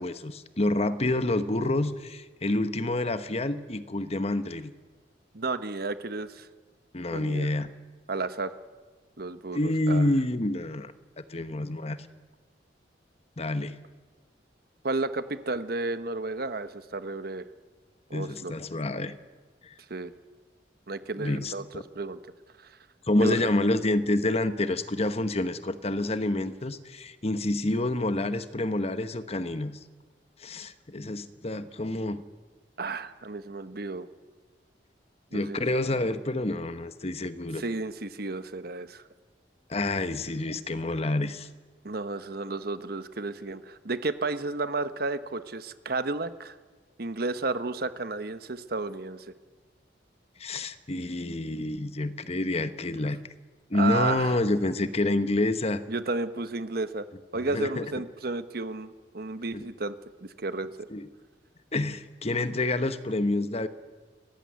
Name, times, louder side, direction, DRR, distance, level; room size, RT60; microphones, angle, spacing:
voice 1, 0.0-4.7 6.9-7.7 9.5-10.9 11.3-12.0 13.4-13.8 18.1-19.1 19.6-19.7 21.2-21.8 23.1-29.7 30.4-32.2 35.3-37.6 39.7-41.5 50.4-53.2 53.7-55.8 57.5-57.8 59.5-59.6 60.9-61.1 61.7-63.7, left 2 dB, 35° left, 11 dB, 1.2 m, -28 dB
voice 2, 5.3-6.5 7.1-7.5 8.1-8.5 9.2-10.1 14.8-17.4 18.1-18.5 19.9-20.1 20.9-21.6 21.9-22.2 22.6-22.8 23.2-23.5 32.8-34.1 35.3-35.7 37.5-39.0 41.8-46.5 47.0-49.3 53.7-54.4 55.9-57.1 57.3-60.0 60.2-60.9, right 3 dB, 60° right, 11 dB, 1.2 m, -32 dB
29.5 x 15.0 x 9.5 m, 1.4 s
head